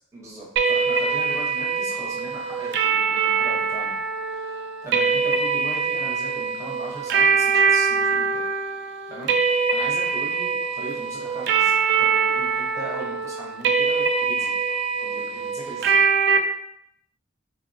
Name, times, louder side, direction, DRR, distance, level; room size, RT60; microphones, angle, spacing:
voice 1, 0.1-4.0 4.3-8.5 9.1-14.5 15.0-16.0, right 2 dB, 15° right, -5 dB, 0.8 m, -38 dB
sound 1, 0.6-16.4, right 5 dB, 60° right, 0.3 m, -23 dB
4.0 x 2.1 x 2.6 m, 0.73 s
head